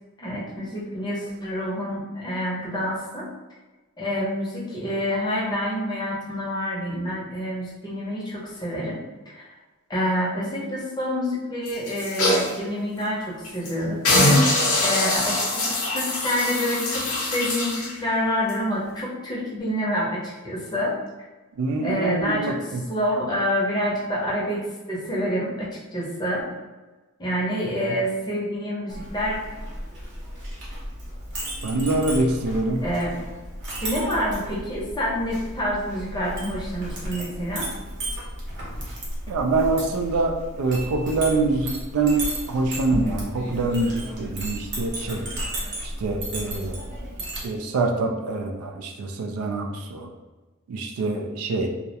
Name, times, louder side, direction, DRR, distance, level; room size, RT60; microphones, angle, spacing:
voice 1, 0.2-3.3 4.0-9.0 9.3-9.5 9.9-14.0 14.8-21.0 21.8-22.6 22.9-26.5 27.2-29.4 32.8-33.2 33.8-37.7, equal, 20° left, -5 dB, 0.6 m, -27 dB
sound 1, 11.7-12.6 13.0-13.1 13.4-13.7 14.0-17.9 18.5-18.6, left 2 dB, 65° left, 0.6 m, -22 dB
voice 2, 21.6-22.8 31.6-32.8 39.3-45.3 45.8-46.8 47.4-50.1 50.7-51.7, right 3 dB, 70° right, 3 dB, 0.3 m, -25 dB
Chink clink, 28.9-47.5, right 1 dB, 55° right, 0.8 m, -34 dB
2.3 x 2.0 x 2.7 m, 1.2 s
head